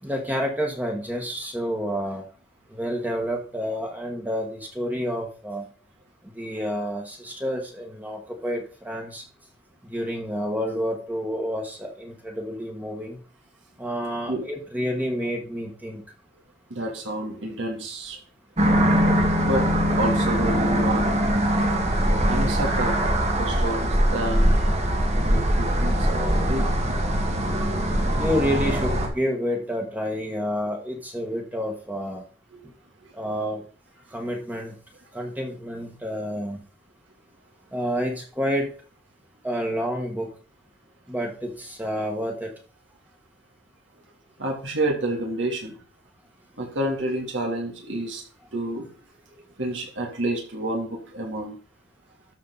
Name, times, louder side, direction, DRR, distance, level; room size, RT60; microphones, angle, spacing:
voice 1, 0.0-2.3 2.7-5.7 6.2-9.2 9.8-13.2 13.8-16.0 28.2-32.2 33.1-33.6 34.1-34.7 35.1-36.6 37.7-38.7 39.4-40.3 41.1-42.5, equal, 10° right, 1 dB, 1.6 m, -29 dB
voice 2, 16.7-18.2 19.4-19.7 20.0-21.3 22.2-23.0 23.4-24.5 25.1-27.0 32.5-32.6 44.4-45.8 46.6-48.2 48.5-48.9 49.6-51.6, right 1 dB, 75° right, -1 dB, 3.2 m, -29 dB
sound 1, 18.6-29.1, equal, 35° right, 1.7 m, -22 dB
13.0 x 5.7 x 4.1 m, 0.41 s
head